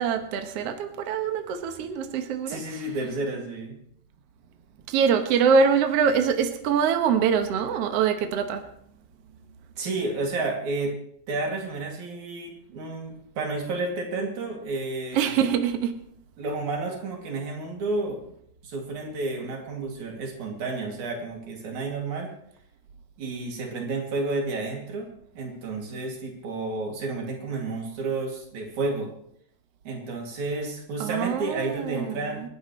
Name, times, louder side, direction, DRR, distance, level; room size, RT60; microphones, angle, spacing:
voice 1, 0.0-2.8 4.9-8.6 15.1-15.9 31.0-32.2, right 6 dB, 65° right, 6 dB, 2.0 m, -24 dB
voice 2, 2.5-3.8 9.8-10.9 11.3-15.5 16.4-18.2 18.6-22.3 23.2-25.1 25.4-29.1 29.9-32.4, right 3 dB, 90° right, 0 dB, 4.0 m, -31 dB
28.0 x 11.5 x 3.2 m, 0.69 s
omnidirectional pair, 3.3 m